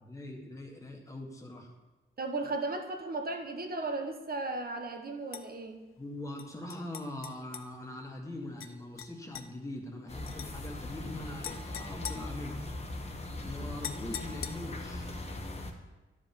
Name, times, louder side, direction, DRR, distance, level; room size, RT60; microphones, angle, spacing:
voice 1, 0.0-1.7 6.0-12.7 13.4-15.1, left 1 dB, 15° left, 1 dB, 1.6 m, -42 dB
voice 2, 2.2-5.8, right 2 dB, 45° right, 4 dB, 1.1 m, -35 dB
sound 1, 5.3-5.5 6.4-7.7 8.6-8.7 9.0-9.5 10.3-10.5 11.4-12.9 13.8-14.9, left 8 dB, 80° left, 0.6 m, -43 dB
sound 2, 10.1-15.7, left 2 dB, 30° left, 1.1 m, -40 dB
11.5 x 5.1 x 5.4 m, 1.1 s
wide cardioid pair, 110°, 21 cm